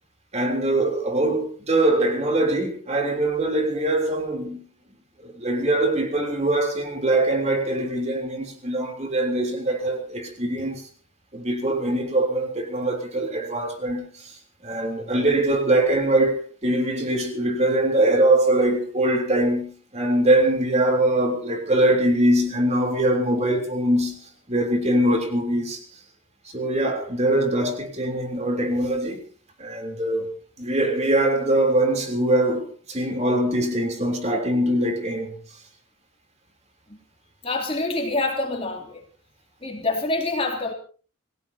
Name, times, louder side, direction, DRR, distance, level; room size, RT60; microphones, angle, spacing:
voice 1, 0.3-4.6 5.2-10.8 11.3-14.3 14.6-24.2 24.5-25.8 26.5-29.2 29.6-35.3, right 1 dB, 30° right, 3.6 m, -22 dB
voice 2, 37.4-39.0 39.6-40.7, left 2 dB, 25° left, 3.1 m, -26 dB
28.5 x 17.5 x 2.9 m
head